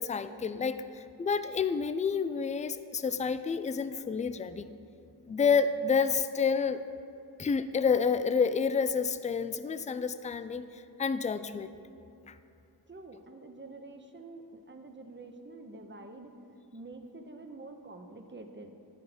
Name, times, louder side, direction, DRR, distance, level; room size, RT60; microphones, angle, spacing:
voice 1, 0.0-4.6 5.3-6.8 7.4-11.7 12.3-12.4, left 5 dB, 20° left, 12 dB, 0.3 m, -29 dB
voice 2, 12.9-16.3 16.7-18.7, right 2 dB, 30° right, 5 dB, 0.8 m, -47 dB
12.0 x 4.6 x 5.0 m, 2.5 s
wide cardioid pair, 50°, 41 cm